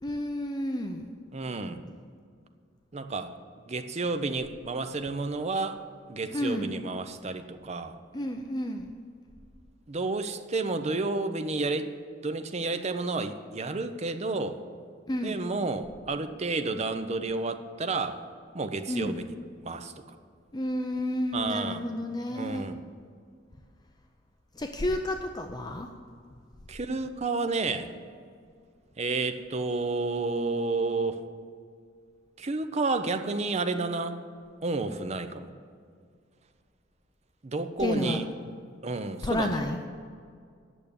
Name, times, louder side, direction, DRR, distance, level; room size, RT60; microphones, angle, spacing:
voice 1, 0.0-1.1 6.3-6.7 8.1-8.9 15.1-15.4 18.9-19.2 20.5-22.6 24.5-25.9 37.8-38.2 39.2-39.9, left 1 dB, 20° left, 4 dB, 0.5 m, -31 dB
voice 2, 1.3-1.8 2.9-3.3 3.7-5.8 6.1-8.0 9.9-11.9 12.2-14.6 15.2-18.2 18.5-19.3 19.6-20.2 21.3-21.8 22.3-22.8 26.7-28.0 29.0-31.2 32.4-34.2 34.6-35.5 37.4-38.3 38.8-39.6, right 3 dB, 35° right, 8 dB, 0.6 m, -31 dB
9.0 x 6.6 x 8.5 m, 2.1 s
head